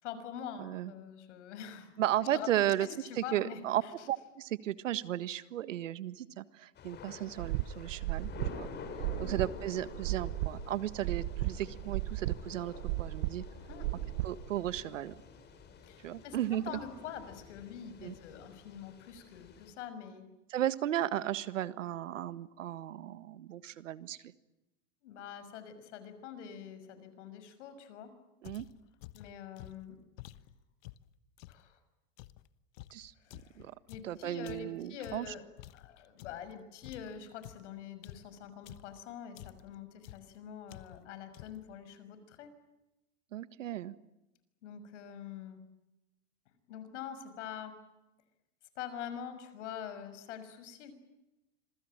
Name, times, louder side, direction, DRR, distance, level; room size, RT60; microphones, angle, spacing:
voice 1, 0.0-1.9 2.3-2.5 2.8-4.1 9.2-9.3 13.7-13.9 15.8-16.4 16.6-20.2 25.0-28.1 29.1-30.0 31.5-31.8 33.2-35.4 35.7-42.5 44.6-45.6 46.7-47.7 48.8-50.9, left 8 dB, 70° left, 11 dB, 6.2 m, -45 dB
voice 2, 0.6-0.9 2.0-2.9 3.3-3.8 4.1-8.7 9.2-12.7 13.0-13.4 14.2-15.1 16.0-16.8 18.0-18.1 20.5-24.2 28.4-28.7 32.9-33.7 34.0-35.3 43.3-43.9, right 12 dB, 85° right, 15 dB, 1.7 m, -35 dB
Thunder / Rain, 6.7-19.7, left 6 dB, 25° left, 4.8 m, -49 dB
sound 1, 7.4-14.8, right 17 dB, 55° right, 1.3 m, -35 dB
sound 2, 28.4-31.7 32.2-36.5 36.8-39.0 39.4-39.8 40.0-40.4 40.7-41.1 41.3-41.7, left 15 dB, 50° left, 1.3 m, -51 dB
27.0 x 22.5 x 8.9 m, 0.96 s
supercardioid pair, 135°, 37 cm